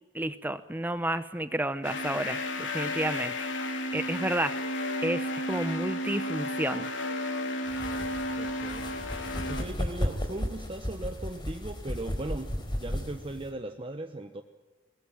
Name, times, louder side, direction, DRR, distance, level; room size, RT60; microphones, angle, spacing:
voice 1, 0.1-3.5 3.9-4.7 5.0-6.9, right 1 dB, 10° right, 12 dB, 0.8 m, -31 dB
sound 1, 1.8-9.6, left 1 dB, 80° left, 3.3 m, -33 dB
sound 2, 7.7-13.5, equal, 25° left, 4.1 m, -34 dB
voice 2, 8.4-8.9 9.5-14.4, right 1 dB, 30° right, 6 dB, 1.1 m, -38 dB
22.5 x 19.5 x 9.0 m, 1.3 s
head